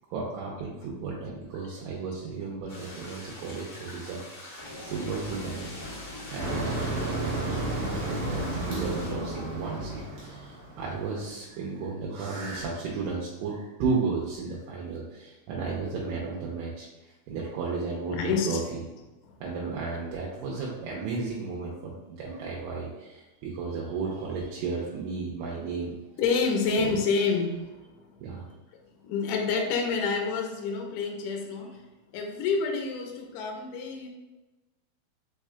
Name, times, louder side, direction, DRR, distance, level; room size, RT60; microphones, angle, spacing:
voice 1, 0.1-5.8 6.3-18.8 19.4-26.0 26.8-27.0 28.2-28.5, right 4 dB, 80° right, -4 dB, 2.3 m, -34 dB
sound 1, 2.7-9.1, left 2 dB, 65° left, 1.0 m, -44 dB
sound 2, 4.6-10.1, left 1 dB, 45° right, 1.3 m, -42 dB
Motor vehicle (road), 6.4-11.3, right 2 dB, 65° right, 1.8 m, -33 dB
voice 2, 18.1-18.6 19.2-19.3 26.2-28.0 29.0-31.8 32.1-34.1, left 5 dB, 80° left, 2 dB, 2.0 m, -28 dB
4.9 x 4.6 x 2.2 m, 1.1 s
omnidirectional pair, 4.3 m